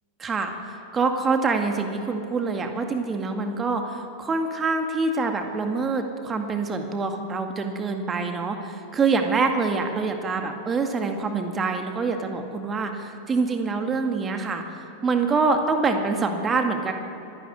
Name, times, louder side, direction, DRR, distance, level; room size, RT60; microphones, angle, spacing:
voice 1, 0.2-16.9, right 4 dB, 20° right, 5 dB, 2.2 m, -25 dB
25.5 x 12.0 x 9.6 m, 2.9 s
figure-of-eight pair, 90°, 0 cm